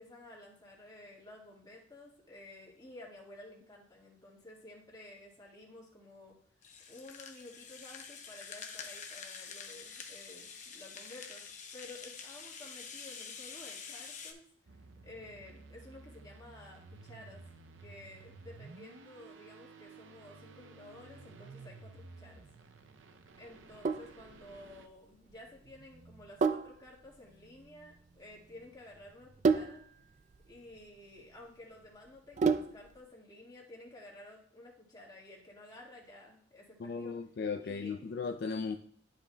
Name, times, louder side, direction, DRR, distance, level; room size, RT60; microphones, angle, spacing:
voice 1, 0.0-6.4 6.9-11.5 11.7-14.4 15.0-17.4 17.8-22.4 23.4-29.8 30.5-37.2 37.6-38.1, left 1 dB, 20° left, -3 dB, 1.8 m, -53 dB
Rattle (instrument), 6.6-14.3, left 6 dB, 40° left, 0.7 m, -47 dB
sound 1, 14.7-24.9, right 3 dB, 85° right, 0.6 m, -54 dB
Sink (filling or washing), 23.5-33.0, right 5 dB, 40° right, 0.3 m, -34 dB
voice 2, 36.8-38.8, left 5 dB, 55° left, 6 dB, 0.4 m, -36 dB
11.5 x 5.1 x 2.2 m, 0.64 s
head